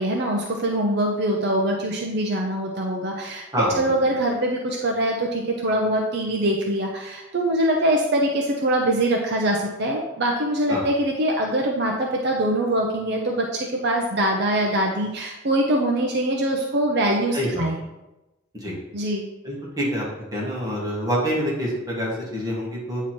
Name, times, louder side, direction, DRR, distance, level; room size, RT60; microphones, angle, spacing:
voice 1, 0.0-17.8 18.9-19.2, right 1 dB, 55° right, 0 dB, 0.6 m, -23 dB
voice 2, 3.5-3.8 10.7-10.8 17.3-17.6 18.5-18.8 19.4-20.0 20.3-23.0, equal, 20° right, -5 dB, 1.5 m, -26 dB
8.4 x 3.0 x 4.3 m, 0.99 s
head